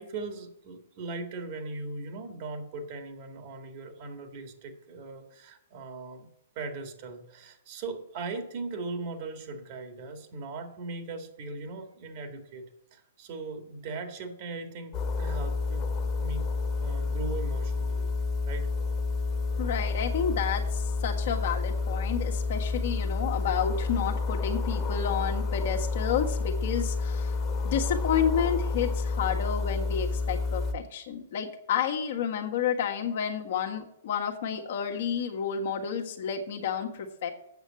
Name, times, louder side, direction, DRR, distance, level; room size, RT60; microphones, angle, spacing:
voice 1, 0.0-6.3 6.6-12.7 12.9-16.4 16.8-18.1 18.5-18.7, right 3 dB, 45° right, 6 dB, 1.9 m, -39 dB
sound 1, 14.9-30.7, left 4 dB, 30° left, 1.4 m, -29 dB
voice 2, 19.6-27.3 27.6-37.3, left 7 dB, 60° left, 3 dB, 1.4 m, -30 dB
8.1 x 6.4 x 7.6 m, 0.78 s
hypercardioid pair, 125°, 0 cm